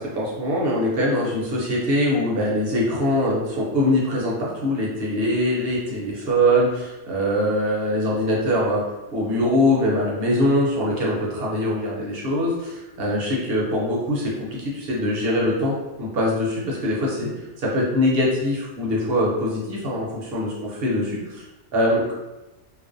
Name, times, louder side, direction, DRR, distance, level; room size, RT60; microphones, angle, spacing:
voice 1, 0.0-8.8 9.1-17.3 17.6-21.4 21.7-22.1, left 1 dB, 55° right, -4 dB, 0.8 m, -23 dB
2.4 x 2.0 x 2.5 m, 1.0 s
omnidirectional pair, 1.3 m